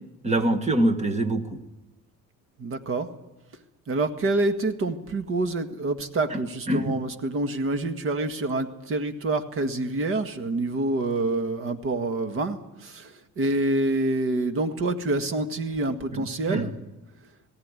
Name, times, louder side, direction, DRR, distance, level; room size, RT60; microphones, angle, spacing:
voice 1, 0.2-1.6 6.3-6.4 6.7-6.9 16.1-16.7, right 1 dB, 20° right, 7 dB, 1.7 m, -25 dB
voice 2, 2.6-3.1 3.9-16.7, right 2 dB, 45° right, 8 dB, 1.8 m, -27 dB
19.0 x 17.0 x 9.8 m, 1.0 s
cardioid pair, 140°, 31 cm